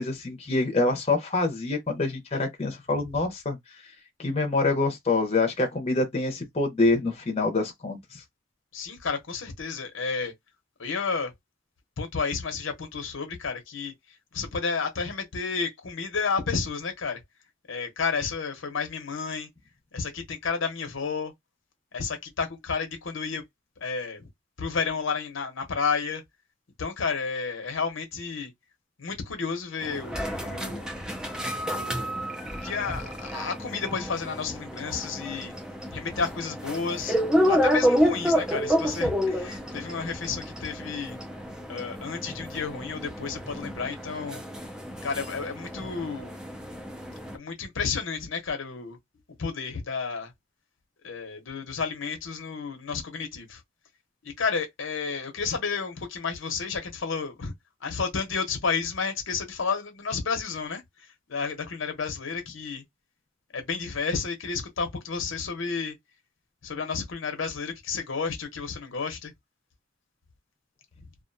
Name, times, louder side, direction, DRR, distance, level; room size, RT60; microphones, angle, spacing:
voice 1, 0.0-3.6 4.2-8.2, left 3 dB, 30° left, 0.7 m, -26 dB
voice 2, 8.7-10.3 10.8-11.3 12.0-13.9 14.3-17.2 17.7-19.5 19.9-21.3 21.9-23.4 23.8-24.2 24.6-26.2 26.8-28.5 29.0-30.9 31.6-32.3 32.6-35.5 35.9-37.2 37.5-41.2 41.7-44.4 45.0-46.3 47.3-49.0 49.4-50.3 51.0-53.6 54.2-57.5 57.8-60.8 61.3-62.8 63.5-66.0 66.6-69.3, left 5 dB, 85° left, 0.8 m, -31 dB
sound 1, 29.8-47.4, equal, 5° right, 0.5 m, -29 dB
2.5 x 2.2 x 2.6 m
head